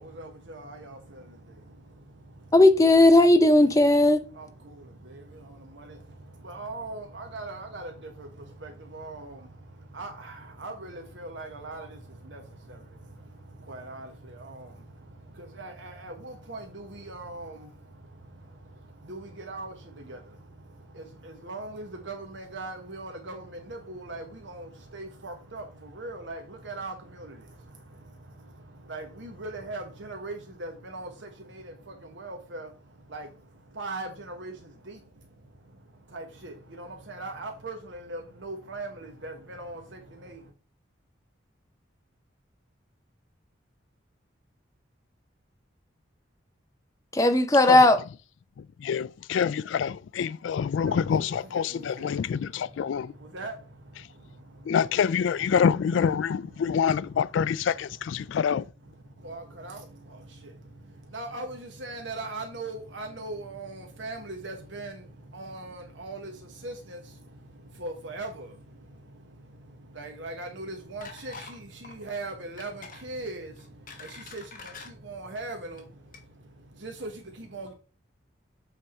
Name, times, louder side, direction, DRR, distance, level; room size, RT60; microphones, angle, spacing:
voice 1, 0.0-2.5 4.3-40.5 50.9-54.8 56.6-57.0 58.2-58.4 58.9-77.7, right 2 dB, 70° right, 1.2 m, -41 dB
voice 2, 2.5-4.2 47.1-48.0, left 1 dB, 15° left, 0.6 m, -17 dB
voice 3, 48.6-53.1 54.6-58.7, left 7 dB, 75° left, 0.3 m, -26 dB
sound 1, 71.0-71.6 71.8-72.0 72.6-73.0 73.6-74.9 75.6-75.8 76.1-76.2, left 4 dB, 45° left, 1.4 m, -45 dB
8.1 x 3.5 x 4.3 m
head